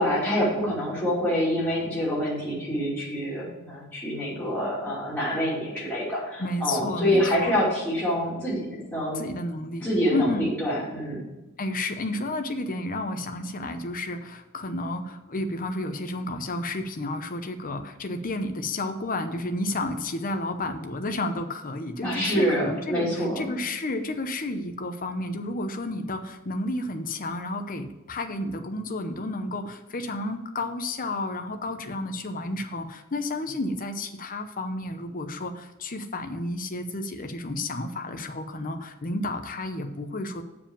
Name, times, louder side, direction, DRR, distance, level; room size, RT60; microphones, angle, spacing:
voice 1, 0.0-9.2 9.8-11.2 22.0-23.5, equal, 5° left, -8 dB, 2.7 m, -26 dB
voice 2, 6.4-7.6 9.1-10.5 11.6-40.4, left 2 dB, 40° left, 7 dB, 0.8 m, -31 dB
7.2 x 4.9 x 7.2 m, 1.0 s
head